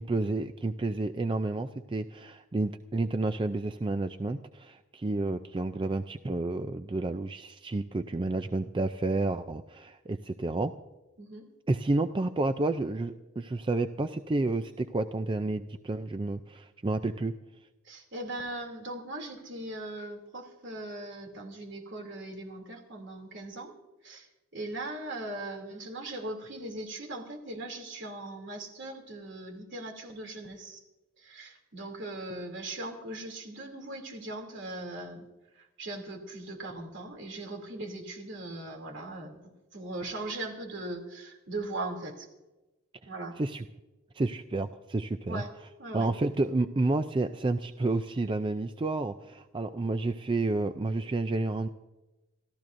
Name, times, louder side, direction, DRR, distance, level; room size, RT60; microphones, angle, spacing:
voice 1, 0.0-10.7 11.7-17.3 43.4-43.6 44.1-45.4 45.9-51.7, right 2 dB, 25° right, 9 dB, 0.4 m, -30 dB
voice 2, 11.2-11.5 17.8-23.7 24.0-24.3 24.5-30.8 31.2-35.3 35.5-39.4 39.7-42.3 43.1-43.4 45.3-45.5 45.8-46.1, right 2 dB, 60° right, 3 dB, 2.8 m, -39 dB
27.5 x 13.5 x 2.6 m, 1.1 s
head